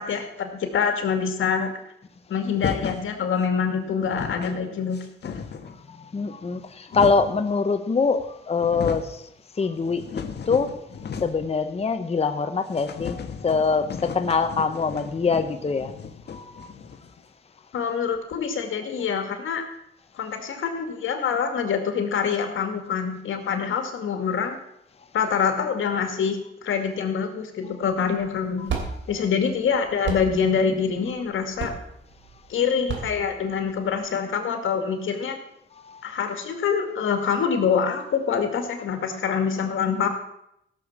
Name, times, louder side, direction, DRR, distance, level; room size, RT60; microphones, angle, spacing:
voice 1, 0.0-1.7 2.3-5.4 17.7-19.6 20.1-24.6 25.1-28.8 29.1-31.7 32.5-35.4 36.0-40.1, left 6 dB, 85° left, 5 dB, 2.2 m, -25 dB
sound 1, 2.5-3.1 3.7-3.8 4.0-4.6 4.9-5.8 6.5-7.4 8.2-8.3 8.5-9.2 9.6-11.5 11.8-11.9 12.2-12.3 12.7-17.2, left 6 dB, 55° left, 1.4 m, -35 dB
voice 2, 6.1-9.2 9.6-10.7 11.2-15.9 16.3-16.7, left 4 dB, 30° left, 8 dB, 0.9 m, -24 dB
sound 2, 27.9-34.1, right 5 dB, 70° right, 3.0 m, -34 dB
16.0 x 7.0 x 7.2 m, 0.78 s
cardioid pair, 100°, 20 cm